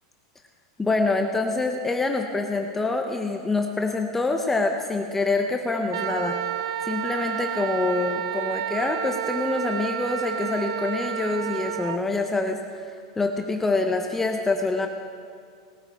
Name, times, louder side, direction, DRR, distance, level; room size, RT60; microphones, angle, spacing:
voice 1, 0.8-6.4 6.8-14.9, left 3 dB, 10° left, 4 dB, 0.7 m, -26 dB
Wind instrument woodwind instrument, 5.9-12.0, right 9 dB, 80° right, 0.5 m, -30 dB
19.0 x 8.7 x 4.7 m, 2.2 s
supercardioid pair, 140°, 3 cm